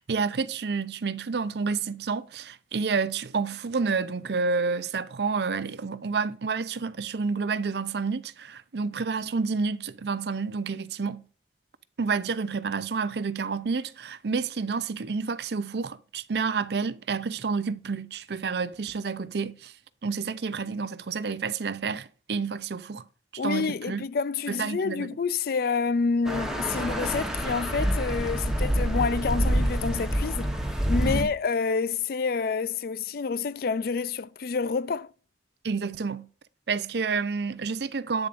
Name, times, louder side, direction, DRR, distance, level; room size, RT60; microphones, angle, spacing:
voice 1, 0.0-11.2 12.0-19.7 20.0-23.0 23.4-24.0 24.5-25.1 31.0-31.3 35.6-36.3 36.7-38.3, right 4 dB, 65° right, 0.5 m, -29 dB
voice 2, 23.4-30.5 30.9-35.1, left 5 dB, 55° left, 0.4 m, -28 dB
sound 1, 26.2-31.2, equal, 5° right, 1.1 m, -27 dB
9.0 x 7.0 x 2.5 m
head